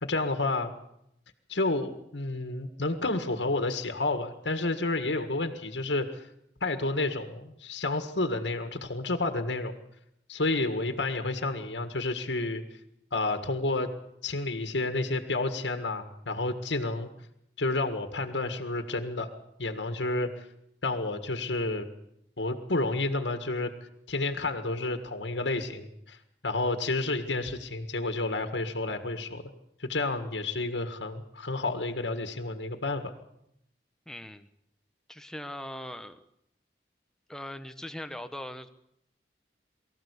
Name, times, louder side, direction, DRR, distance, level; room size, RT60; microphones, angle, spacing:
voice 1, 0.0-0.7 1.5-6.2 6.6-9.8 10.3-12.6 13.1-13.9 14.2-17.1 17.6-19.3 19.6-20.5 20.8-21.9 22.4-23.7 24.1-26.2 26.4-29.4 29.8-33.1, left 2 dB, 90° left, 7 dB, 1.8 m, -30 dB
voice 2, 34.1-34.5 35.1-36.2 37.3-38.7, left 1 dB, 5° left, 8 dB, 1.0 m, -40 dB
23.5 x 14.5 x 8.3 m, 0.77 s
head